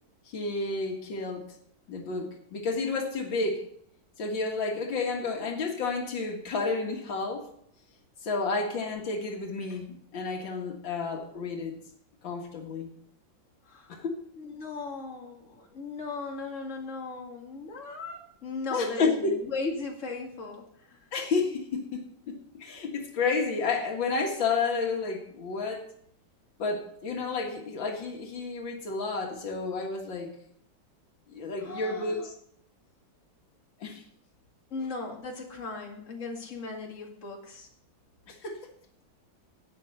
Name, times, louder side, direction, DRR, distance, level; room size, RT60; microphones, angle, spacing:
voice 1, 0.3-1.5 1.9-3.6 4.2-7.5 8.2-11.7 12.2-12.9 13.9-14.2 18.7-19.4 21.1-25.9 26.6-30.3 31.3-32.3 33.8-34.0 38.3-38.6, left 4 dB, 85° left, 2 dB, 2.4 m, -31 dB
voice 2, 14.4-19.1 19.4-21.0 31.6-32.3 34.7-37.7, left 3 dB, 40° left, 0 dB, 2.4 m, -37 dB
11.5 x 8.6 x 5.7 m, 0.67 s
omnidirectional pair, 2.0 m